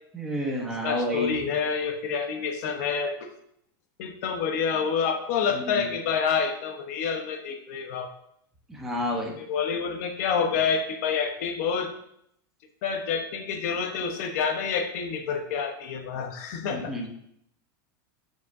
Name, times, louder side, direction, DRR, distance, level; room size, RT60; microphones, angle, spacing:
voice 1, 0.1-1.4 5.5-5.8 8.7-9.3 16.7-17.1, equal, 5° right, -3 dB, 1.0 m, -30 dB
voice 2, 0.8-3.3 4.0-8.1 9.4-11.9 12.8-16.9, left 6 dB, 50° left, 5 dB, 1.0 m, -28 dB
12.5 x 5.2 x 2.7 m, 0.72 s
supercardioid pair, 175°, 11 cm